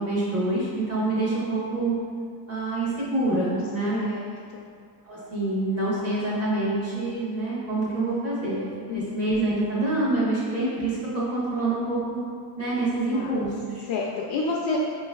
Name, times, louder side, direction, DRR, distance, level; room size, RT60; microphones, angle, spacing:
voice 1, 0.0-1.9 2.5-4.0 5.0-12.2 12.6-13.9, right 2 dB, 40° right, -8 dB, 1.2 m, -26 dB
voice 2, 3.9-4.3 4.5-4.7 8.9-9.1 13.0-13.3 13.9-14.8, left 4 dB, 85° left, -3 dB, 0.5 m, -29 dB
5.0 x 3.0 x 2.3 m, 2.1 s
cardioid pair, 180°, 39 cm